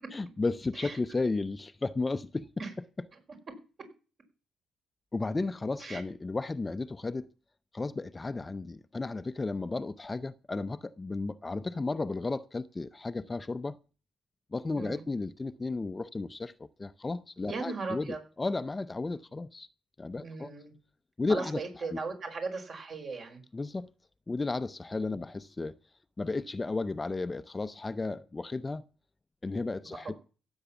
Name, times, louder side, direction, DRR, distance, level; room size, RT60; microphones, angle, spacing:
voice 1, 0.1-2.5 5.1-7.3 7.7-13.8 14.5-16.5 16.8-19.7 20.0-20.5 21.2-21.6 21.9-22.0 23.5-23.9 24.3-25.7 26.2-28.8 29.4-30.2, left 3 dB, 20° left, 0.7 m, -33 dB
voice 2, 17.4-18.2 20.2-20.7 21.3-23.4 29.8-30.1, right 4 dB, 50° right, 5.2 m, -37 dB
16.0 x 8.1 x 7.1 m
cardioid pair, 90°, 0 cm